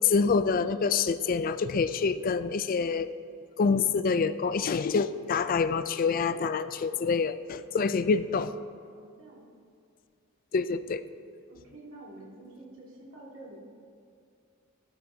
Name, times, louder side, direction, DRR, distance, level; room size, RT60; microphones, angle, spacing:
voice 1, 0.0-3.1 3.6-8.5 10.5-11.0, left 5 dB, 40° left, 13 dB, 0.3 m, -26 dB
voice 2, 8.9-9.5 11.5-13.6, right 2 dB, 65° right, -4 dB, 2.4 m, -48 dB
13.0 x 12.5 x 2.8 m, 2.3 s
head